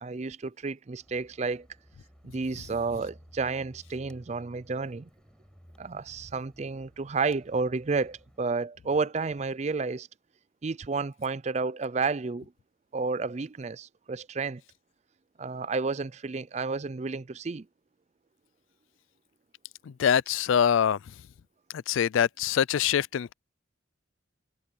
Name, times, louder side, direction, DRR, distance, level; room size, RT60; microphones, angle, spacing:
voice 1, 0.0-1.7 2.2-5.1 5.8-10.1 10.6-12.5 12.9-14.6 15.4-17.7, right 4 dB, 35° right, 0.4 m, -31 dB
sound 1, 1.0-8.4, equal, 5° left, 7.1 m, -56 dB
voice 2, 19.9-21.0 21.7-23.3, left 8 dB, 75° left, 0.3 m, -24 dB
head